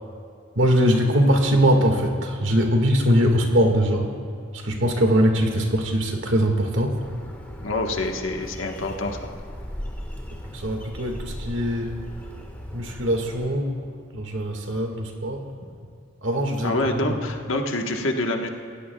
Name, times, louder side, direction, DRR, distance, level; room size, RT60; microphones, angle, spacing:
voice 1, 0.6-4.1 4.5-7.0 10.5-12.0 12.7-13.7 14.1-15.5 16.2-17.2, equal, 65° right, 2 dB, 1.8 m, -21 dB
Bird, 7.0-13.5, equal, 10° left, 1.4 m, -37 dB
voice 2, 7.6-9.3 16.6-18.5, left 2 dB, 75° left, 2 dB, 1.3 m, -26 dB
26.0 x 16.5 x 2.3 m, 2.3 s
head